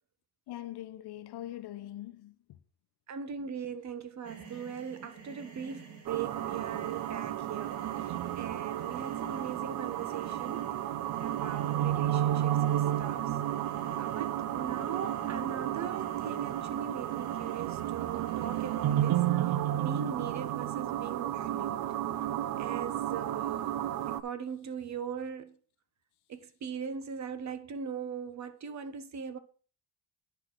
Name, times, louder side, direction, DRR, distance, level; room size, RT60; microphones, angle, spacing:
voice 1, 0.5-2.6 4.5-4.6, left 14 dB, 75° left, 1.0 m, -43 dB
voice 2, 3.1-10.7 11.2-13.2 14.0-19.2 19.7-21.9 22.6-25.6 26.3-29.4, right 7 dB, 45° right, 1.0 m, -40 dB
sound 1, 4.2-19.3, right 5 dB, 85° right, 3.1 m, -51 dB
sound 2, 6.1-24.2, right 12 dB, 65° right, 0.6 m, -32 dB
10.0 x 4.5 x 6.0 m
cardioid pair, 130°, 39 cm